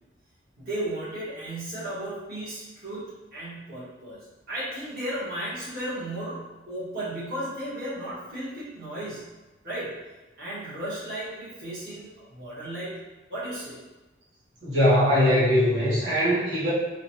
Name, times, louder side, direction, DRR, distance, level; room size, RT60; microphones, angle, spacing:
voice 1, 0.6-4.2 4.5-9.3 9.6-9.9 10.4-13.8, right 1 dB, 50° right, -11 dB, 1.3 m, -35 dB
voice 2, 14.6-16.7, equal, 70° right, -10 dB, 1.4 m, -21 dB
4.8 x 2.3 x 3.0 m, 1.1 s
head